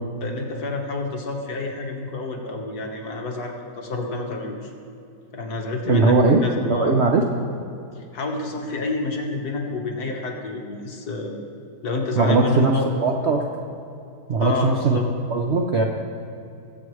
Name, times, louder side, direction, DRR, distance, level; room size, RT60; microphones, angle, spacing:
voice 1, 0.2-4.7 5.3-6.9 8.0-11.3 11.8-13.1 14.4-15.1, left 3 dB, 65° left, 1 dB, 1.7 m, -29 dB
voice 2, 5.9-7.2 12.2-12.7 13.0-13.5 14.3-15.0 15.3-15.8, right 3 dB, 60° right, 2 dB, 0.7 m, -19 dB
21.5 x 7.7 x 3.2 m, 2.7 s
omnidirectional pair, 1.9 m